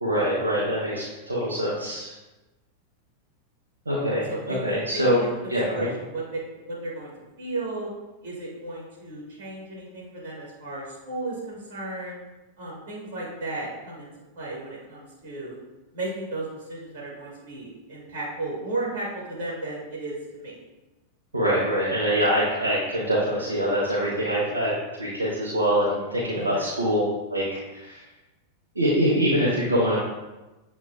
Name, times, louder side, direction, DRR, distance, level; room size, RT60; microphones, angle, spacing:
voice 1, 0.0-2.1 3.9-5.2 5.5-5.9 21.3-24.7 25.0-27.0 27.3-28.0 28.7-30.0, equal, 75° right, -6 dB, 0.9 m, -24 dB
voice 2, 3.9-6.2 6.7-7.1 7.4-7.9 8.2-12.2 12.6-14.1 14.3-15.6 15.9-20.6 26.3-26.6, right 2 dB, 55° right, -4 dB, 1.5 m, -34 dB
7.4 x 3.0 x 2.3 m, 1.1 s
figure-of-eight pair, 90°, 0 cm